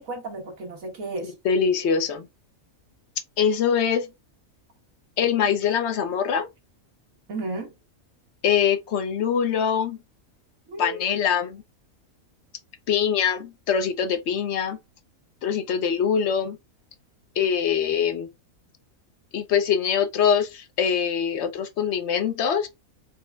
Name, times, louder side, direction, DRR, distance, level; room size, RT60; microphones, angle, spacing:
voice 1, 0.0-1.3 7.3-7.7 10.7-11.1, right 2 dB, 70° right, 1.7 m, -33 dB
voice 2, 1.2-2.3 3.4-4.1 5.2-6.5 8.4-10.0 10.8-11.6 12.9-14.8 15.4-16.6 17.4-18.3 19.3-22.7, left 7 dB, 60° left, 0.8 m, -23 dB
4.4 x 2.1 x 3.3 m
omnidirectional pair, 1.5 m